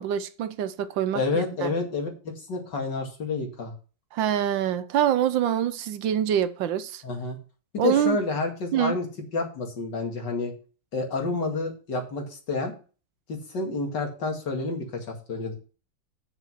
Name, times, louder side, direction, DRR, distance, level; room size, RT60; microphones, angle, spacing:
voice 1, 0.0-1.7 4.1-7.0 7.8-8.2 8.7-9.0, right 10 dB, 80° right, 1.5 m, -25 dB
voice 2, 1.1-3.7 7.0-7.4 7.7-9.1 9.3-10.5 10.9-12.7 13.3-15.5, left 3 dB, 65° left, 2.7 m, -29 dB
7.8 x 6.6 x 6.2 m
omnidirectional pair, 2.0 m